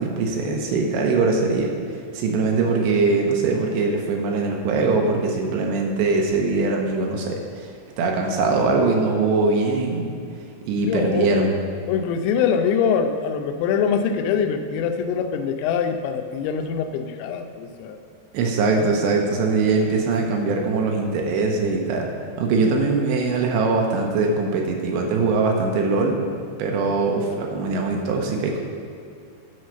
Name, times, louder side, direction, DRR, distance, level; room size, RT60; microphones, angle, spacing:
voice 1, 0.0-1.7 2.1-7.7 8.0-10.1 10.7-11.5 18.3-22.1 22.4-26.2 26.6-28.6, right 3 dB, 80° right, 1 dB, 3.0 m, -22 dB
voice 2, 10.9-11.3 11.9-18.0, left 7 dB, 85° left, 6 dB, 2.9 m, -23 dB
9.5 x 5.5 x 6.5 m, 2.5 s
omnidirectional pair, 5.2 m